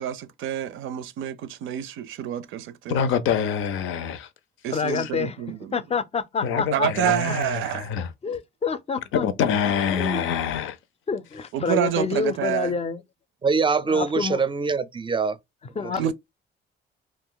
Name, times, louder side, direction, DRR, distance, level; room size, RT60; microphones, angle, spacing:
voice 1, 0.0-3.1 4.6-5.8 6.7-7.9 11.5-12.7 16.0-16.1, right 11 dB, 85° right, 0.5 m, -28 dB
voice 2, 2.9-4.3 4.9-5.1 6.4-8.1 9.2-10.8, left 7 dB, 90° left, 0.5 m, -26 dB
voice 3, 4.7-5.4 5.7-7.1 7.7-7.8 8.2-9.5 9.9-10.2 11.1-13.0 13.9-14.4 15.8-16.1, left 5 dB, 30° left, 0.4 m, -28 dB
voice 4, 13.4-15.4 15.8-16.1, right 5 dB, 25° right, 0.4 m, -24 dB
2.4 x 2.3 x 3.7 m
cardioid pair, 90°, 20 cm